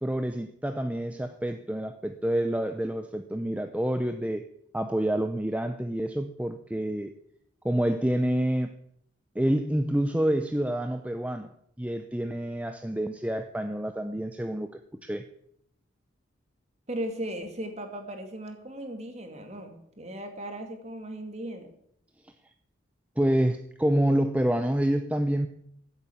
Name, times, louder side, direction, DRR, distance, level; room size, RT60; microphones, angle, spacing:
voice 1, 0.0-4.4 4.7-7.1 7.6-8.7 9.4-11.5 11.8-15.2 22.2-22.3 23.2-25.5, right 1 dB, 5° right, 7 dB, 0.6 m, -28 dB
voice 2, 16.9-21.7, right 1 dB, 35° right, 5 dB, 2.4 m, -37 dB
15.0 x 8.1 x 8.6 m, 0.72 s
head